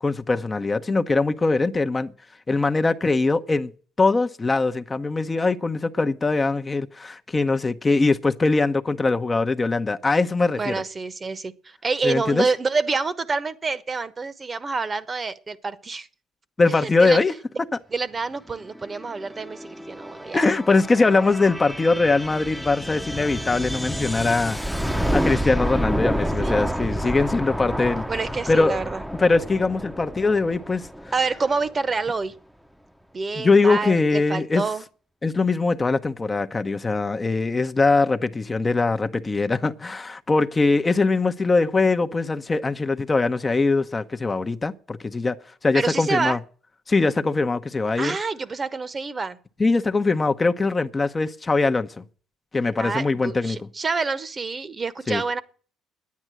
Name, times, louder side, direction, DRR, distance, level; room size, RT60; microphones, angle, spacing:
voice 1, 0.0-2.1 2.5-3.7 4.0-10.8 12.0-12.5 16.6-17.3 20.3-24.6 25.1-28.1 28.5-28.9 29.1-30.9 33.4-34.6 35.2-45.4 45.6-46.4 46.9-48.2 49.6-52.0 52.5-53.6 55.1-55.2, left 3 dB, 25° left, 0.8 m, -22 dB
voice 2, 10.6-11.5 11.8-16.1 16.7-17.2 17.5-17.6 17.9-20.4 26.1-27.3 28.1-29.0 31.1-32.3 33.1-34.8 45.7-46.4 48.0-49.4 52.8-55.4, right 4 dB, 30° right, 1.1 m, -27 dB
sound 1, 18.6-32.1, equal, ahead, 0.9 m, -29 dB
9.8 x 9.5 x 7.6 m
supercardioid pair, 75°, 0 cm